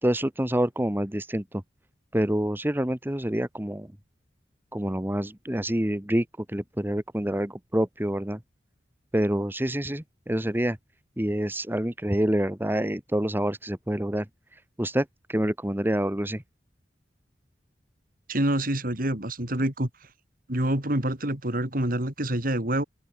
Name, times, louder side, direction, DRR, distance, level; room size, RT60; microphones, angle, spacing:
voice 1, 0.0-1.6 2.1-3.9 4.7-8.4 9.1-10.8 11.2-14.3 14.5-16.4, right 1 dB, 10° right, 1.2 m, -27 dB
voice 2, 18.3-19.9 20.5-22.8, right 1 dB, 50° right, 3.8 m, -26 dB
open air
head